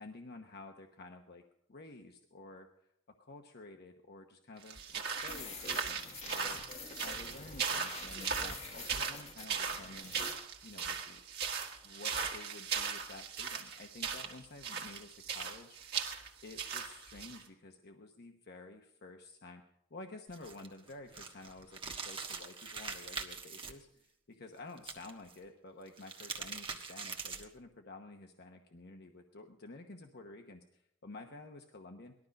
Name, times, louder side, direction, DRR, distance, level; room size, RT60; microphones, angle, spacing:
voice 1, 0.0-1.4 1.7-2.7 3.2-10.1 10.6-11.2 11.8-15.8 16.4-19.6 19.9-32.1, left 2 dB, 55° left, 4 dB, 1.0 m, -51 dB
sound 1, 4.6-17.4, right 6 dB, 55° right, 1.8 m, -38 dB
sound 2, 4.9-10.3, left 4 dB, 35° left, 1.6 m, -47 dB
sound 3, 20.3-23.7 24.8-25.4 25.9-27.6, right 5 dB, 25° right, 1.4 m, -43 dB
19.0 x 12.5 x 5.3 m, 0.78 s
head